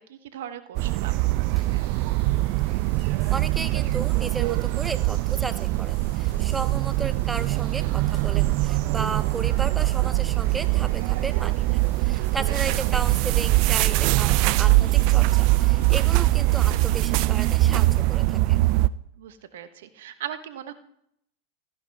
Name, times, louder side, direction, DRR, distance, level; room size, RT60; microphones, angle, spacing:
voice 1, 0.1-1.9 12.3-12.6 19.2-20.7, right 10 dB, 70° right, 12 dB, 1.1 m, -39 dB
sound 1, 0.8-18.9, right 18 dB, 50° right, 0.4 m, -22 dB
Bathtub (filling or washing), 1.4-18.1, left 3 dB, 80° left, 4.0 m, -55 dB
sound 2, 1.6-1.9 2.4-3.5 3.8-4.3 4.6-5.1 5.7-6.8 7.1-7.6 7.9-8.4 9.0-10.1 10.4-10.9 11.2-11.7 12.2-13.4 13.7-14.2 14.5-14.7, left 3 dB, 10° left, 3.8 m, -49 dB
voice 2, 3.3-18.6, right 3 dB, 15° right, 13 dB, 0.7 m, -34 dB
14.5 x 11.0 x 3.5 m, 0.73 s
hypercardioid pair, 100°, 0 cm